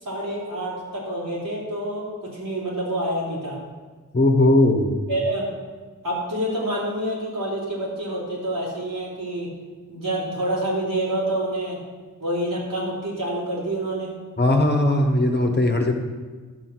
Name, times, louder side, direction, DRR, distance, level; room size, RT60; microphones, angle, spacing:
voice 1, 0.0-3.6 5.1-5.5 6.0-9.5 9.9-11.8 12.2-14.1, right 1 dB, 80° right, -6 dB, 3.8 m, -27 dB
voice 2, 4.1-4.9 14.4-15.9, left 1 dB, 30° left, 3 dB, 1.4 m, -18 dB
10.5 x 7.0 x 6.2 m, 1.4 s
wide cardioid pair, 65°, 32 cm